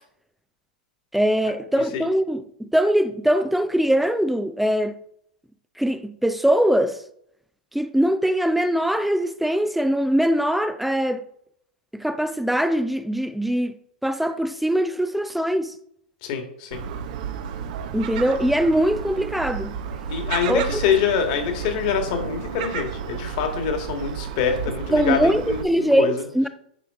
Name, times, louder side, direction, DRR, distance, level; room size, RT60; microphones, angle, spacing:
voice 1, 1.1-4.9 5.8-7.0 7.7-11.3 11.9-13.8 14.0-15.7 17.9-19.8 20.5-20.6 24.9-26.5, equal, ahead, 0.4 m, -22 dB
voice 2, 16.2-16.8 20.1-26.2, left 7 dB, 55° left, 1.8 m, -25 dB
Gull seagull, 16.7-25.6, right 8 dB, 55° right, 0.8 m, -32 dB
9.9 x 4.5 x 3.6 m
hypercardioid pair, 110°, 5 cm